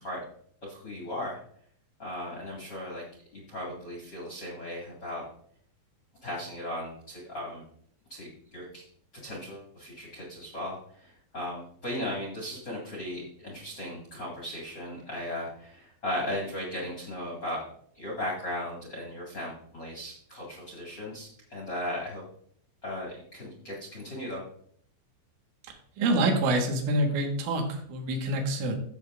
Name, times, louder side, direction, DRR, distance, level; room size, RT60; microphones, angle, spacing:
voice 1, 0.6-1.4 2.0-3.0 3.3-5.2 6.2-7.6 8.1-8.8 9.2-17.6 17.9-22.2 22.8-24.4, left 1 dB, 60° left, -4 dB, 1.1 m, -37 dB
voice 2, 25.6-28.8, right 1 dB, 80° right, 2 dB, 3.7 m, -27 dB
14.0 x 7.1 x 2.5 m, 0.62 s
omnidirectional pair, 5.5 m